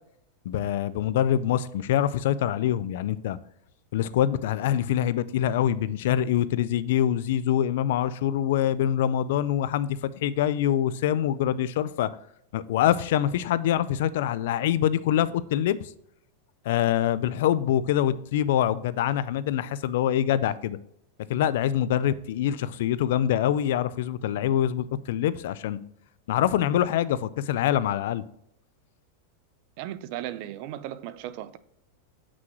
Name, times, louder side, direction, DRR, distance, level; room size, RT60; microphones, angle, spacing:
voice 1, 0.5-3.4 3.9-12.1 12.5-15.8 16.6-20.8 21.3-25.8 26.3-28.2, left 11 dB, 60° left, 0.4 m, -25 dB
voice 2, 29.8-31.6, right 12 dB, 40° right, 0.4 m, -36 dB
7.6 x 6.1 x 3.0 m
supercardioid pair, 175°, 0 cm